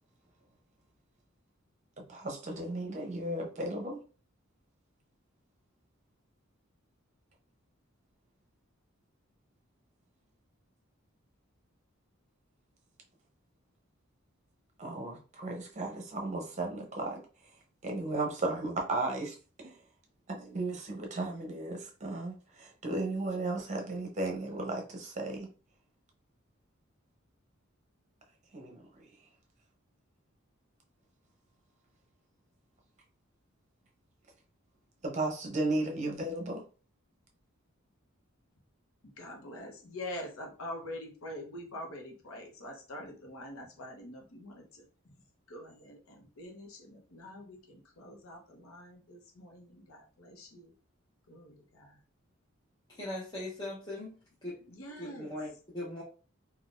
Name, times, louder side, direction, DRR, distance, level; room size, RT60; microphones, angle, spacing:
voice 1, 2.1-4.0 14.8-17.2 17.8-19.4 19.6-19.8 20.3-25.5 28.5-28.9 35.0-36.6, right 2 dB, 35° right, 0.7 m, -35 dB
voice 2, 39.2-44.8 45.5-50.7 51.3-51.9 54.7-55.3, left 1 dB, 90° left, 0.8 m, -45 dB
voice 3, 52.9-54.1 54.4-54.6 55.0-56.0, left 1 dB, 20° left, 0.8 m, -39 dB
3.8 x 2.3 x 2.5 m
head